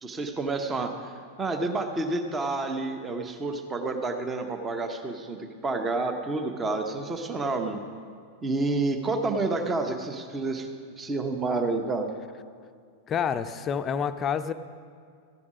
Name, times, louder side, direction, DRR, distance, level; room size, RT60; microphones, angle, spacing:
voice 1, 0.0-7.8 8.4-10.7 11.0-12.1, right 3 dB, 20° right, 6 dB, 1.0 m, -29 dB
voice 2, 13.1-14.5, left 7 dB, 25° left, 11 dB, 0.5 m, -28 dB
14.5 x 11.0 x 4.9 m, 2.2 s
figure-of-eight pair, 90°, 0 cm